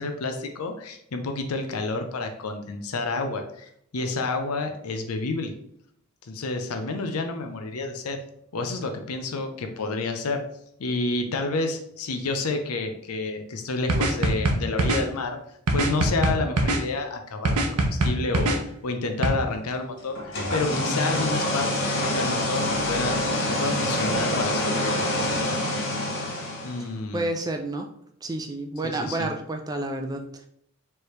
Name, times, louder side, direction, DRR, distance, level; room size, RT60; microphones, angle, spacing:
voice 1, 0.0-5.5 6.2-8.2 8.5-10.4 10.8-15.4 15.7-18.6 18.8-23.2 23.5-25.6 26.6-27.3 28.8-29.3, left 3 dB, 85° left, 5 dB, 0.6 m, -29 dB
sound 1, 13.9-15.0 15.7-16.8 17.5-18.6 19.2-19.3, right 2 dB, 85° right, 0.8 m, -22 dB
sound 2, 20.2-26.9, left 1 dB, 55° left, 1.1 m, -26 dB
voice 2, 27.1-27.9 28.2-30.5, right 2 dB, 15° right, 4 dB, 0.4 m, -30 dB
4.6 x 3.3 x 3.1 m, 0.70 s
head